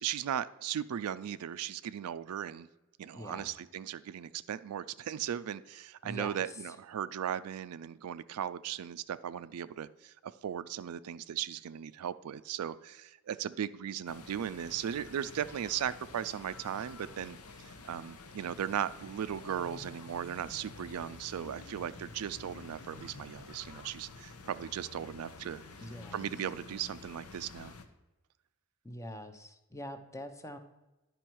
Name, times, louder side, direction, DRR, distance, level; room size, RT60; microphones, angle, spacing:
voice 1, 0.0-2.7 3.0-17.4 17.6-25.6 26.1-27.7, right 9 dB, 80° right, 14 dB, 0.4 m, -37 dB
voice 2, 3.1-3.5 6.0-6.4 25.8-26.2 28.8-30.6, left 1 dB, 15° left, 8 dB, 0.6 m, -43 dB
sound 1, 14.1-27.9, left 4 dB, 80° left, 0.8 m, -50 dB
10.0 x 5.3 x 4.5 m, 1.0 s
head